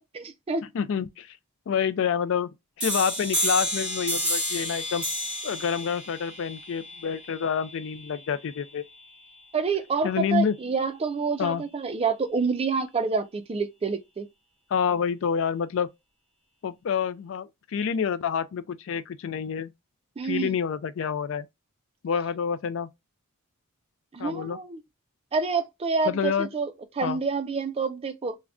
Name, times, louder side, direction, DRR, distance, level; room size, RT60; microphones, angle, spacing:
voice 1, 0.1-0.6 9.5-14.3 20.2-20.6 24.1-24.8 25.3-28.4, right 4 dB, 25° right, 0.3 m, -28 dB
voice 2, 0.7-1.4 1.7-2.5 2.8-5.0 5.4-8.8 10.0-10.6 11.4-11.6 14.7-15.9 16.6-19.7 20.2-21.5 22.0-22.9 24.2-24.6 26.1-26.5 27.0-27.2, left 7 dB, 60° left, 0.3 m, -28 dB
sound 1, 2.8-8.2, equal, 5° right, 1.0 m, -30 dB
2.5 x 2.1 x 3.4 m
head